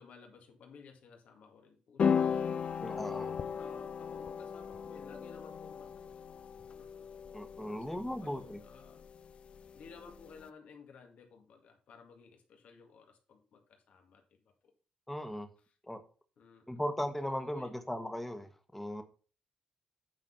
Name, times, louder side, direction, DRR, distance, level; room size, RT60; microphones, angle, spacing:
voice 1, 0.0-2.4 3.0-6.4 6.7-7.1 7.8-9.1 9.7-14.2 14.6-14.7 16.4-16.8 17.2-17.7, left 5 dB, 70° left, 2.0 m, -55 dB
sound 1, 2.0-10.4, left 7 dB, 50° left, 0.5 m, -36 dB
voice 2, 2.8-3.3 7.3-8.6 15.1-15.5 15.9-16.0 16.7-19.0, equal, 5° left, 1.4 m, -37 dB
9.0 x 4.0 x 5.4 m
cardioid pair, 80°, 2 cm